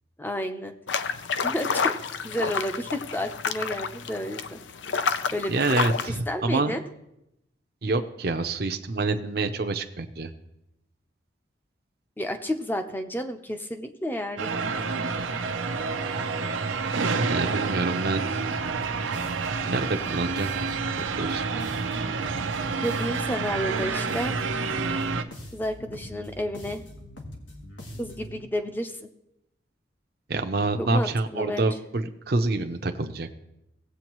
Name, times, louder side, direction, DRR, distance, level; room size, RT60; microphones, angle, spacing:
voice 1, 0.2-0.7 1.4-1.9 2.2-4.6 5.3-5.8 6.3-6.8 12.2-14.5 15.3-15.4 22.8-24.4 25.5-26.8 28.0-29.1 30.8-31.7, equal, 10° left, 6 dB, 0.6 m, -31 dB
sound 1, 0.9-6.1, left 5 dB, 75° left, 0.5 m, -29 dB
voice 2, 5.5-6.8 7.8-10.3 17.3-18.2 19.6-20.8 21.2-21.4 30.3-33.3, right 3 dB, 55° right, 6 dB, 0.6 m, -27 dB
sound 2, 14.4-25.2, right 4 dB, 90° right, 0.6 m, -28 dB
sound 3, 18.5-28.4, left 1 dB, 90° left, 1.7 m, -43 dB
17.5 x 8.1 x 3.0 m, 0.84 s
head